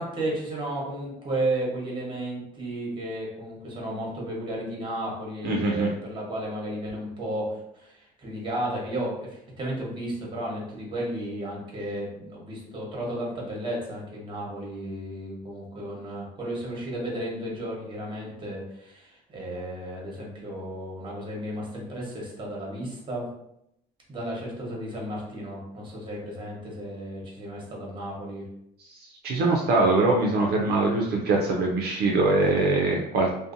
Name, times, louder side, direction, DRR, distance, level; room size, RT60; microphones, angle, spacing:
voice 1, 0.0-23.3 24.1-28.5, right 1 dB, 30° right, -3 dB, 1.0 m, -33 dB
voice 2, 5.4-5.9 29.2-33.3, right 3 dB, 65° right, -1 dB, 0.5 m, -22 dB
2.6 x 2.1 x 2.5 m, 0.79 s
cardioid pair, 110°, 17 cm